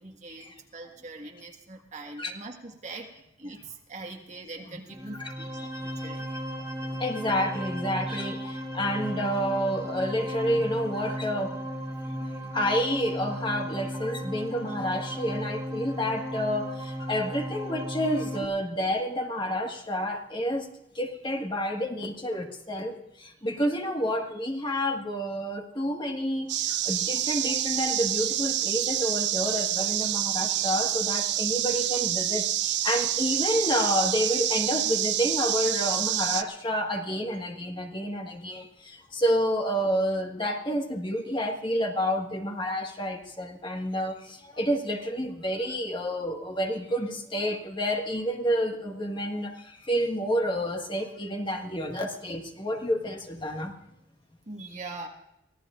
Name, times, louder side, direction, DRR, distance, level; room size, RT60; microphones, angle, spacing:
voice 1, 0.0-3.1 3.4-6.3 18.4-18.5 54.5-55.1, right 2 dB, 40° right, 2 dB, 1.7 m, -42 dB
sound 1, 4.9-18.4, equal, 15° right, 2.2 m, -35 dB
voice 2, 5.2-5.7 6.9-11.6 12.2-12.3 12.5-20.7 21.0-53.7 54.6-54.7, equal, 25° left, 2 dB, 1.7 m, -29 dB
sound 2, 26.5-36.4, right 12 dB, 60° right, 0.6 m, -27 dB
24.5 x 16.5 x 2.5 m, 0.83 s
head